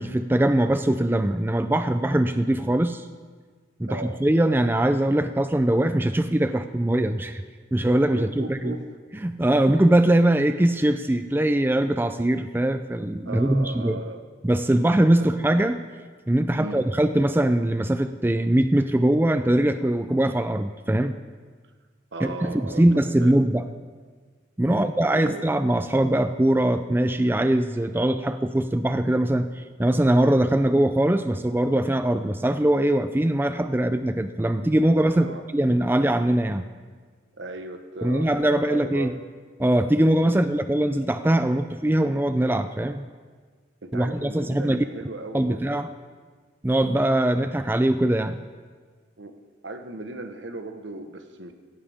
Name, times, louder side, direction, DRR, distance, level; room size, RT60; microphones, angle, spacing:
voice 1, 0.0-3.1 3.8-7.4 7.7-8.8 9.2-14.0 14.4-15.8 16.3-21.2 22.2-23.6 24.6-36.6 38.0-39.1 39.6-43.0 43.9-44.8 45.3-45.9 46.6-48.4, right 1 dB, 10° right, 9 dB, 0.4 m, -22 dB
voice 2, 3.9-4.2 8.1-8.8 13.2-14.2 15.2-15.3 16.6-16.8 22.1-22.8 23.2-23.4 24.7-25.5 35.1-35.4 37.4-39.1 40.2-40.4 43.8-45.8 49.2-49.3 49.6-51.5, right 2 dB, 75° right, 7 dB, 1.2 m, -37 dB
17.0 x 16.5 x 3.5 m, 1.5 s
head